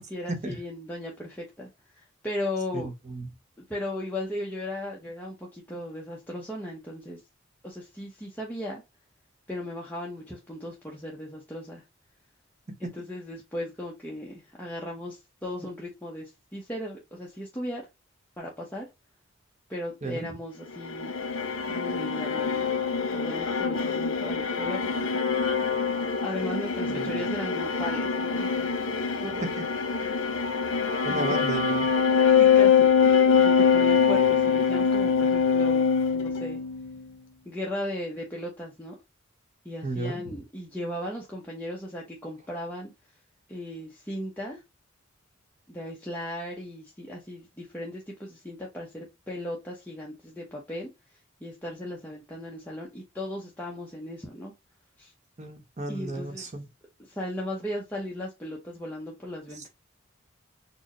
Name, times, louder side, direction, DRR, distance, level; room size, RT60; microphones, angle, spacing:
voice 1, 0.0-2.9 3.6-7.2 7.6-8.8 9.5-11.8 12.8-17.8 18.4-18.9 19.7-21.1 21.7-22.6 23.1-25.2 25.6-25.8 26.2-28.8 29.2-29.5 31.1-31.3 32.4-32.9 33.4-35.9 36.1-36.6 37.5-39.0 39.6-42.9 43.5-44.6 45.7-50.9 51.4-54.5 55.0-55.1 55.9-56.5 57.0-59.7, left 1 dB, 10° left, 0.8 m, -36 dB
voice 2, 2.7-3.3 20.0-20.2 26.8-27.1 31.0-31.9 39.8-40.4 55.4-56.7, right 2 dB, 35° right, 1.0 m, -33 dB
sound 1, 20.7-37.0, left 6 dB, 80° left, 0.9 m, -24 dB
4.3 x 2.2 x 3.0 m
head